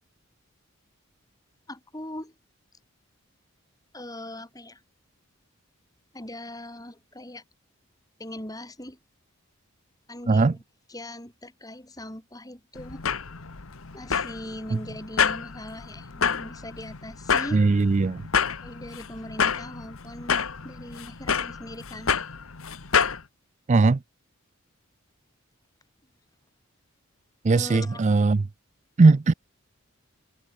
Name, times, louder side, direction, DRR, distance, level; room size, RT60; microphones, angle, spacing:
voice 1, 1.7-2.3 3.9-4.8 6.1-7.4 8.2-9.0 10.1-10.6 10.9-13.0 13.9-17.6 18.6-22.2 27.5-28.0, left 1 dB, 15° left, 4.8 m, -40 dB
voice 2, 10.3-10.6 14.7-14.8 17.5-18.3 23.7-24.0 27.4-28.5 29.0-29.3, right 3 dB, 35° right, 0.4 m, -19 dB
sound 1, 12.8-23.2, left 6 dB, 75° left, 1.3 m, -28 dB
head